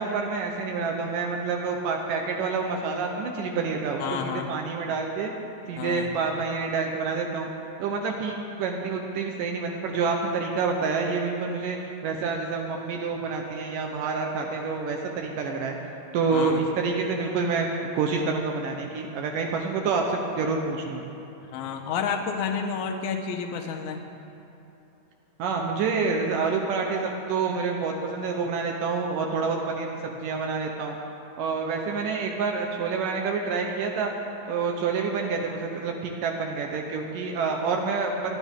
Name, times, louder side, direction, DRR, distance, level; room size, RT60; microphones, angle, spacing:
voice 1, 0.0-5.3 5.7-7.5 7.8-11.8 12.0-15.8 16.1-17.7 18.0-21.0 25.4-31.0 31.4-34.1 34.5-38.4, right 4 dB, 80° right, 1 dB, 2.5 m, -28 dB
voice 2, 4.0-4.5 5.8-6.1 16.3-16.7 21.5-24.0, left 6 dB, 70° left, 4 dB, 2.3 m, -30 dB
26.5 x 10.5 x 3.7 m, 2.9 s
omnidirectional pair, 3.8 m